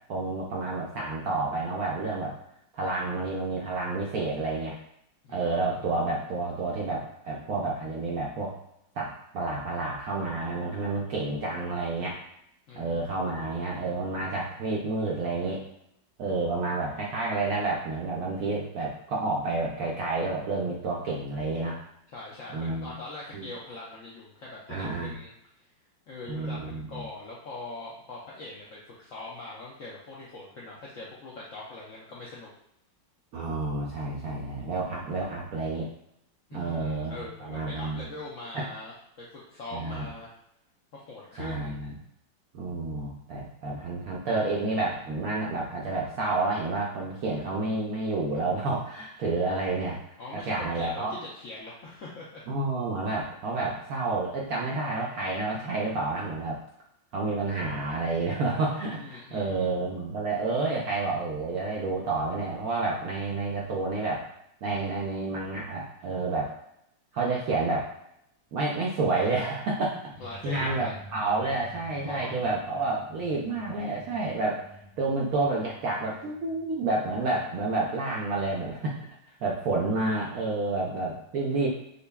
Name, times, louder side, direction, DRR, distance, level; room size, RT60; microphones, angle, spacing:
voice 1, 0.1-2.3 2.7-4.8 5.3-8.6 9.0-12.2 12.7-15.6 16.2-21.8 22.5-22.9 23.3-23.4 24.7-25.1 26.3-27.0 33.3-35.9 36.5-38.0 38.5-38.6 39.7-40.1 41.4-41.9 42.5-50.0 50.5-51.1 52.5-56.6 57.1-64.2 64.6-66.5 67.1-67.9 68.5-70.0 70.4-74.6 75.0-79.0 79.4-81.7, right 3 dB, 75° right, -3 dB, 0.8 m, -29 dB
voice 2, 5.2-6.0 12.7-13.6 22.1-25.3 26.1-32.5 36.5-40.3 40.9-41.9 50.2-52.4 58.9-59.7 70.2-70.9 72.0-72.4, left 2 dB, 70° left, -5 dB, 0.7 m, -42 dB
sound 1, 70.1-77.3, right 1 dB, 25° right, 0.8 m, -49 dB
5.2 x 2.2 x 2.2 m, 0.77 s
omnidirectional pair, 2.0 m